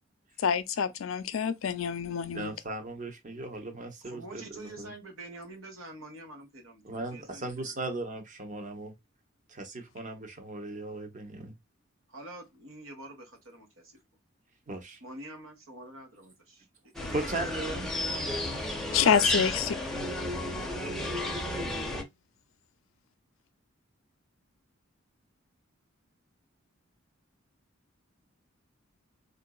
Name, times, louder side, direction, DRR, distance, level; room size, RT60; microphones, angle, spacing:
voice 1, 0.4-2.5 18.9-19.7, left 7 dB, 85° left, 0.5 m, -27 dB
voice 2, 2.3-4.9 6.8-8.9 9.5-11.5 14.7-15.0 17.1-17.9, right 2 dB, 40° right, 0.8 m, -37 dB
voice 3, 4.0-7.8 12.1-13.8 15.0-16.6 17.0-17.3 18.8-20.0, right 1 dB, 85° right, 1.4 m, -47 dB
sound 1, 16.9-22.0, left 1 dB, ahead, 0.6 m, -32 dB
3.8 x 2.5 x 2.2 m
head